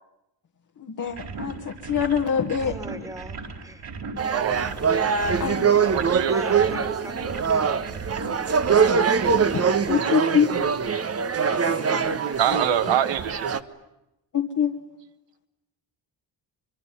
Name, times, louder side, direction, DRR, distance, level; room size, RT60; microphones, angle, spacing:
voice 1, 0.8-2.8 5.4-5.8 9.5-10.7 11.5-13.0 14.3-14.8, left 7 dB, 45° left, 2 dB, 1.7 m, -26 dB
sound 1, 1.1-10.0, right 4 dB, 60° right, 4.4 m, -37 dB
voice 2, 2.6-3.8 6.3-8.1, right 1 dB, 5° right, 9 dB, 2.3 m, -39 dB
sound 2, 4.2-13.6, right 6 dB, 35° right, 1.3 m, -23 dB
voice 3, 4.3-4.6 5.8-6.4 10.1-10.2 12.4-13.6, right 10 dB, 80° right, 10 dB, 1.7 m, -24 dB
24.5 x 23.5 x 9.9 m, 0.90 s
cardioid pair, 95°, 44 cm